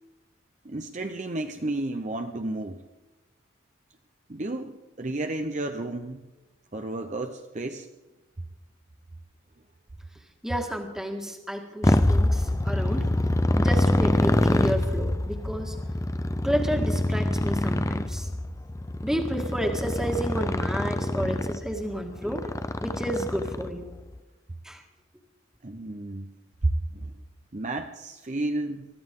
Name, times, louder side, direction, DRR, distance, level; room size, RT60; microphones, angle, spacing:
voice 1, 0.6-2.8 4.3-6.2 6.7-7.9 25.6-26.3 26.6-27.1 27.5-28.9, right 2 dB, 35° right, 5 dB, 0.7 m, -31 dB
voice 2, 10.4-13.1 13.6-15.8 16.4-18.3 19.0-22.5 22.8-23.9 24.6-24.8, equal, 5° right, 3 dB, 1.8 m, -31 dB
Motorcycle, 11.8-23.9, left 1 dB, 15° left, 0.5 m, -25 dB
24.0 x 14.5 x 3.8 m, 1.1 s
head